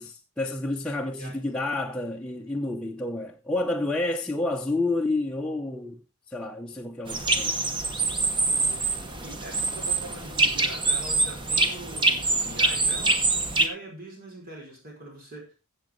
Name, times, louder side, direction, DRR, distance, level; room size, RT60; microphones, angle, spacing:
voice 1, 0.0-6.0 6.3-7.6, left 2 dB, 5° left, 0.8 m, -29 dB
sound 1, 7.1-13.7, right 3 dB, 20° right, 1.3 m, -25 dB
voice 2, 8.3-15.6, right 1 dB, 40° right, 5.0 m, -43 dB
15.0 x 7.5 x 3.7 m
head